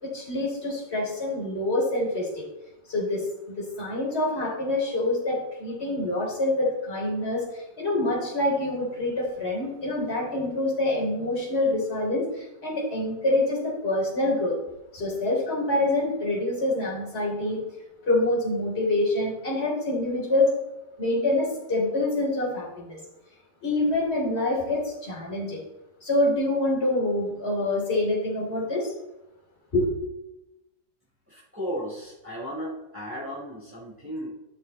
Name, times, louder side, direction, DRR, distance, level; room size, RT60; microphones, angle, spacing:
voice 1, 0.0-2.5 2.9-14.6 14.9-17.6 18.0-20.5 21.0-23.0 23.6-25.6 26.0-28.9 29.7-29.9, left 2 dB, 35° left, -4 dB, 3.6 m, -26 dB
voice 2, 31.3-34.3, equal, 5° right, -7 dB, 4.0 m, -35 dB
12.5 x 6.6 x 4.2 m, 0.94 s
omnidirectional pair, 2.0 m